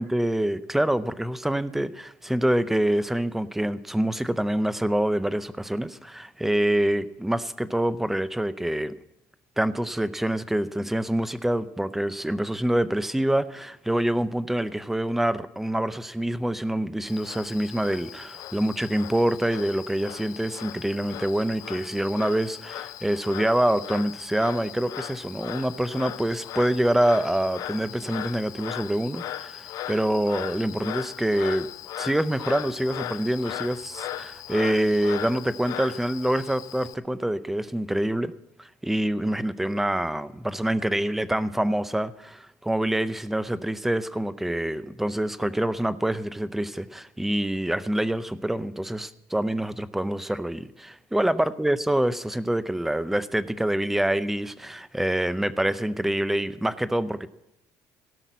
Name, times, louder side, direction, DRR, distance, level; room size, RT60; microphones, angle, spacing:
voice 1, 0.0-8.9 9.6-31.7 32.0-38.3 38.6-57.3, right 1 dB, 5° right, 0.5 m, -26 dB
Frog, 17.1-36.9, left 12 dB, 55° left, 0.6 m, -38 dB
17.0 x 5.9 x 9.2 m
cardioid pair, 140°, 7 cm